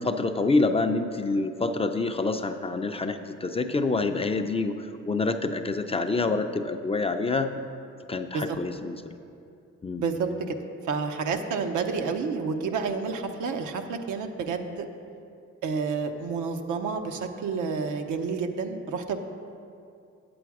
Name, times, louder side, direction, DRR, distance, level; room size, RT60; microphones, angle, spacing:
voice 1, 0.0-7.5 8.1-9.1 9.8-10.0, left 3 dB, 20° left, 7 dB, 0.4 m, -27 dB
voice 2, 10.0-10.6 10.9-14.9 15.6-19.2, right 5 dB, 80° right, 5 dB, 0.8 m, -29 dB
8.3 x 7.8 x 4.7 m, 2.6 s
cardioid pair, 90°, 30 cm